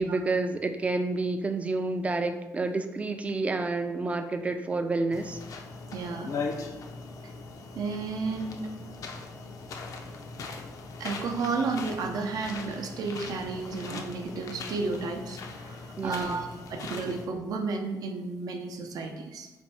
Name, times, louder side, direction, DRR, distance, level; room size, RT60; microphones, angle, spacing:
voice 1, 0.0-5.4 16.0-16.4, right 3 dB, 20° right, 7 dB, 0.3 m, -29 dB
sound 1, 5.1-17.3, left 4 dB, 60° left, 0.5 m, -40 dB
voice 2, 5.9-6.4 7.7-8.6 11.0-19.5, right 4 dB, 75° right, 4 dB, 0.5 m, -32 dB
4.2 x 2.2 x 4.2 m, 1.1 s
cardioid pair, 120°, 7 cm